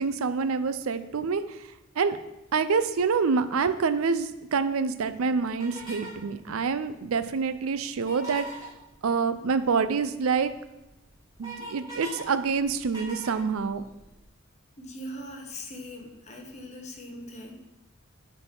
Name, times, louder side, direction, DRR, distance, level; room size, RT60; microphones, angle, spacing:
voice 1, 0.0-1.6 2.0-2.2 2.5-8.6 9.0-10.5 11.4-13.8, right 5 dB, 75° right, 12 dB, 0.5 m, -27 dB
sound 1, 5.6-6.2 8.0-8.7 10.3-10.4 10.8-12.2 12.5-14.1, right 1 dB, 20° right, 2.9 m, -40 dB
voice 2, 14.8-17.6, left 1 dB, 35° left, 1 dB, 1.3 m, -41 dB
8.0 x 4.1 x 5.4 m, 0.94 s
head